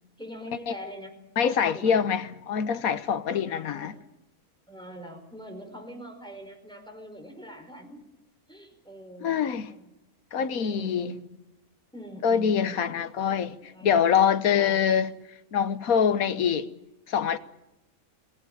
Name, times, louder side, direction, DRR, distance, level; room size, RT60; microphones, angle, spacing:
voice 1, 0.2-1.2 1.4-2.1 3.3-4.1 4.7-8.1 8.5-9.9 10.6-11.4 11.9-13.0 13.6-15.0 16.2-16.6, equal, 5° left, 4.2 m, -44 dB
voice 2, 1.4-3.9 9.2-9.7 10.3-11.1 12.2-15.1 15.5-16.6 17.1-17.4, left 7 dB, 70° left, 1.5 m, -24 dB
21.5 x 16.0 x 8.9 m
omnidirectional pair, 1.5 m